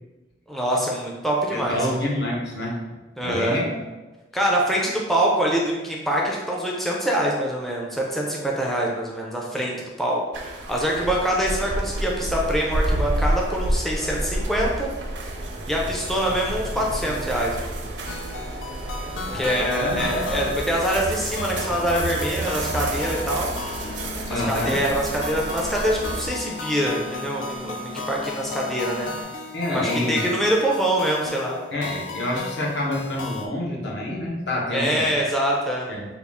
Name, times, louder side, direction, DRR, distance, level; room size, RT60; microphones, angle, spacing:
voice 1, 0.5-1.9 3.2-3.6 4.3-14.9 15.7-17.9 19.3-23.5 24.3-29.1 29.7-31.6 34.7-36.0, right 1 dB, ahead, -3 dB, 0.4 m, -24 dB
voice 2, 1.5-2.8 3.2-3.8 19.3-20.1 24.3-24.8 29.5-30.3 31.7-35.1 35.9-36.1, left 1 dB, 65° left, -3 dB, 0.9 m, -27 dB
sound 1, 10.3-26.3, right 1 dB, 70° right, 0.5 m, -30 dB
sound 2, 18.1-33.5, left 3 dB, 90° left, 0.4 m, -36 dB
sound 3, 20.4-29.2, left 3 dB, 50° left, 1.1 m, -40 dB
3.5 x 2.3 x 3.5 m, 1.2 s
head